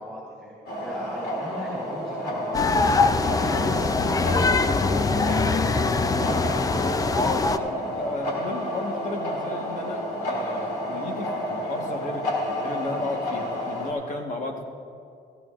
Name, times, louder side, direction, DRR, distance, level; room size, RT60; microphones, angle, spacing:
voice 1, 0.0-4.7 5.0-5.2, equal, 5° left, -8 dB, 3.6 m, -39 dB
sound 1, 0.7-13.9, equal, 70° left, 2.6 m, -30 dB
sound 2, 2.5-7.6, left 4 dB, 20° left, 0.5 m, -23 dB
voice 2, 7.1-14.6, left 2 dB, 45° left, 2 dB, 1.5 m, -34 dB
16.0 x 16.0 x 2.5 m, 2.4 s
cardioid pair, 110°, 17 cm